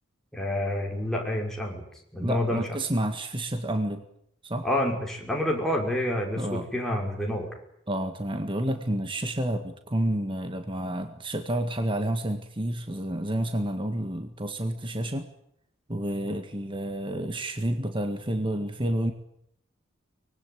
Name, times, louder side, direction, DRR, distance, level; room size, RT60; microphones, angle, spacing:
voice 1, 0.3-1.8 2.1-2.7 4.6-7.5, left 1 dB, ahead, -1 dB, 5.7 m, -28 dB
voice 2, 2.2-4.0 4.4-4.7 6.4-6.7 7.9-15.3 15.9-19.1, right 1 dB, 25° right, 6 dB, 1.8 m, -29 dB
24.0 x 20.5 x 9.4 m, 0.74 s
head